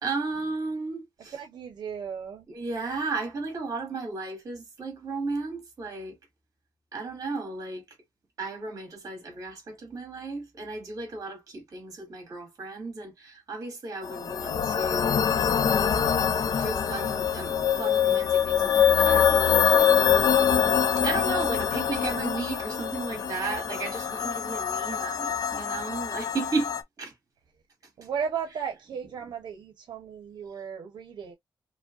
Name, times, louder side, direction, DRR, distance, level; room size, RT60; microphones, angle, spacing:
voice 1, 0.0-1.4 2.5-6.2 6.9-7.8 8.4-15.3 16.5-19.9 21.0-27.1 28.6-28.7, right 3 dB, 45° right, 2.2 m, -34 dB
voice 2, 1.2-2.5 28.0-31.3, right 7 dB, 75° right, 0.8 m, -35 dB
sound 1, 14.0-26.8, left 8 dB, 55° left, 0.6 m, -24 dB
5.0 x 2.2 x 2.4 m
wide cardioid pair, 175°, 8 cm